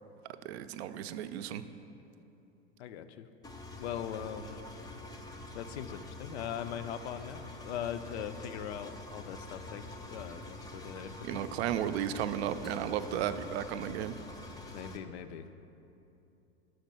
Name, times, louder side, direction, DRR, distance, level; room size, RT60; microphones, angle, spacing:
voice 1, 0.4-1.6 11.2-14.1, right 10 dB, 70° right, 11 dB, 0.5 m, -34 dB
voice 2, 2.8-3.3 3.8-4.7 5.6-11.5 14.7-15.6, left 9 dB, 70° left, 11 dB, 0.5 m, -40 dB
Engine, 3.4-15.0, left 2 dB, 10° left, 0.5 m, -46 dB
6.5 x 4.4 x 5.4 m, 2.8 s
hypercardioid pair, 95°, 34 cm